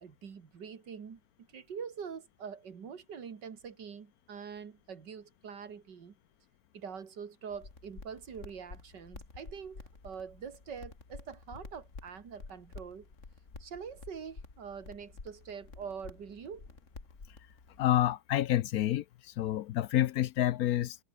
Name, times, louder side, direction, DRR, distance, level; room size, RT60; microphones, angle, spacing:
voice 1, 0.0-6.2 6.7-13.1 13.6-16.7, right 6 dB, 85° right, 2.6 m, -44 dB
sound 1, 7.5-17.9, left 3 dB, 45° left, 3.1 m, -50 dB
voice 2, 17.8-21.0, left 13 dB, 70° left, 1.0 m, -28 dB
omnidirectional pair, 1.8 m